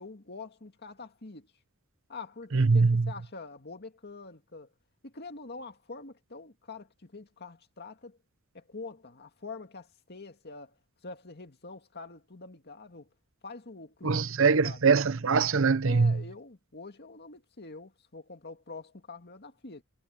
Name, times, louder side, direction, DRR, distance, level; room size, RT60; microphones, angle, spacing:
voice 1, 0.0-1.5 2.1-4.7 5.0-8.2 8.5-10.8 11.0-13.1 13.4-14.8 15.8-19.8, left 3 dB, 50° left, 2.2 m, -45 dB
voice 2, 2.5-3.1 14.0-16.2, right 4 dB, 65° right, 0.8 m, -23 dB
head